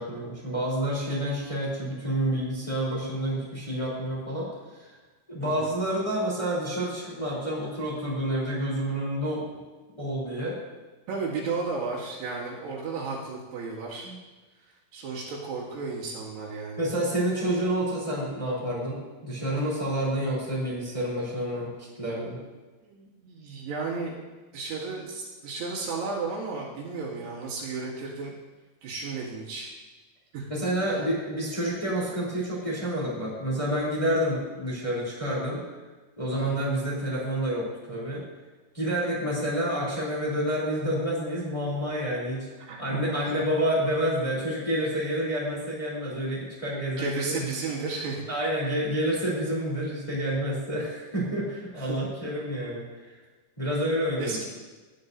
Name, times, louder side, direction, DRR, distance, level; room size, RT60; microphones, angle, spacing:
voice 1, 0.0-4.9 5.3-9.4 10.0-10.6 14.0-14.2 16.8-21.7 22.0-22.3 30.5-35.6 36.2-38.2 38.7-42.5 42.8-47.5 48.3-53.1 53.6-54.4, equal, 10° left, -5 dB, 2.8 m, -29 dB
voice 2, 5.4-5.7 11.1-14.1 14.9-16.9 22.8-24.2 24.5-28.4 28.8-29.7 30.3-30.5 30.9-31.0 36.3-36.7 42.7-43.4 47.0-48.2 51.8-52.0 54.2-54.5, right 4 dB, 75° right, -4 dB, 4.2 m, -33 dB
17.5 x 11.0 x 2.7 m, 1.2 s
omnidirectional pair, 4.8 m